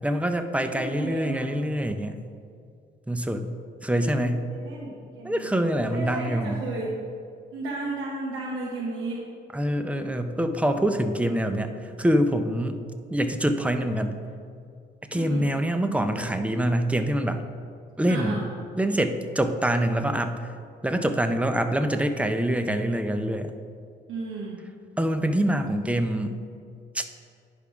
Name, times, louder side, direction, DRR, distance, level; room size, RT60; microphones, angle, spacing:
voice 1, 0.0-2.2 3.1-3.5 3.8-4.4 5.2-6.6 9.5-12.8 13.1-14.2 15.1-17.4 18.0-18.4 18.8-20.5 20.8-23.5 25.0-26.4 26.9-27.0, right 1 dB, 5° right, 7 dB, 0.5 m, -25 dB
voice 2, 0.6-1.5 4.0-5.6 5.9-7.0 7.5-9.3 15.1-15.5 18.1-18.4 24.1-24.6, right 2 dB, 90° right, -3 dB, 1.0 m, -34 dB
10.0 x 3.6 x 4.8 m, 2.3 s
cardioid pair, 90°, 20 cm